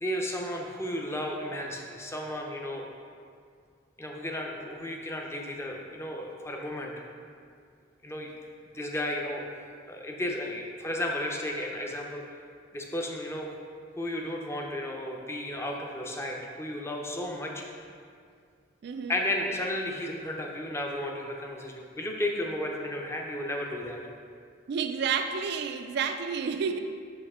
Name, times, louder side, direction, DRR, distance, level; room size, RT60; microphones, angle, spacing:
voice 1, 0.0-2.8 4.0-6.9 8.0-8.3 8.7-9.4 9.8-12.2 12.7-13.5 14.0-17.6 19.1-24.0, left 1 dB, 15° left, 0 dB, 0.6 m, -33 dB
voice 2, 18.8-19.2 24.7-26.8, right 6 dB, 55° right, 7 dB, 0.4 m, -30 dB
6.3 x 5.5 x 3.6 m, 2.2 s
head